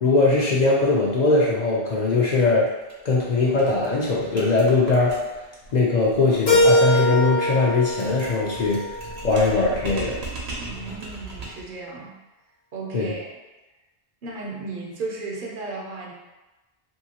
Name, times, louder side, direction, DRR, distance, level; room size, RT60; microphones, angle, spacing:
voice 1, 0.0-2.7 3.0-5.2 5.7-8.8 9.2-10.2 12.9-13.1, left 3 dB, 55° left, -4 dB, 0.5 m, -20 dB
sound 1, 2.8-2.9 3.2-3.3 3.6-11.7, right 2 dB, 90° right, 0.9 m, -38 dB
Keyboard (musical), 6.5-9.4, left 1 dB, 80° left, 1.2 m, -22 dB
voice 2, 10.7-12.1 12.7-13.3 14.2-16.1, right 3 dB, 60° right, -3 dB, 0.7 m, -34 dB
2.8 x 2.7 x 2.8 m, 1.1 s
omnidirectional pair, 1.0 m